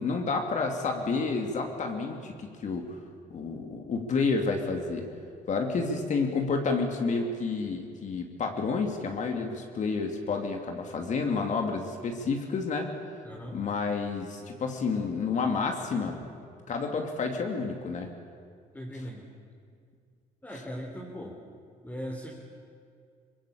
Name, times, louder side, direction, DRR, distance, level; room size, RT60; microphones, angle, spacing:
voice 1, 0.0-2.9 3.3-5.1 5.5-12.9 13.5-16.2 16.7-18.1, left 4 dB, 45° left, 3 dB, 2.9 m, -30 dB
voice 2, 13.2-13.6 18.7-19.3 20.4-21.4 21.8-22.3, equal, 10° left, -3 dB, 3.6 m, -39 dB
23.5 x 21.0 x 8.7 m, 2.3 s
cardioid pair, 110°, 17 cm